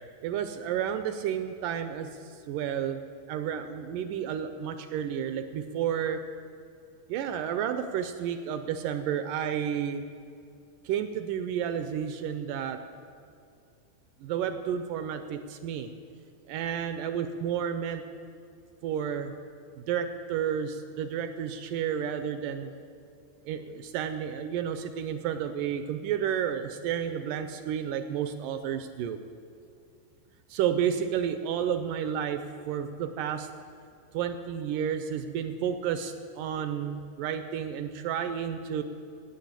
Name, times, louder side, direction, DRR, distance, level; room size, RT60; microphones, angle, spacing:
voice 1, 0.2-3.0 3.3-6.2 7.1-10.0 10.9-12.8 14.2-15.9 16.5-18.0 18.8-19.3 19.8-22.7 23.5-29.2 30.5-33.5 34.1-38.8, right 8 dB, 80° right, 9 dB, 2.0 m, -31 dB
12.5 x 9.4 x 8.1 m, 2.4 s
omnidirectional pair, 4.2 m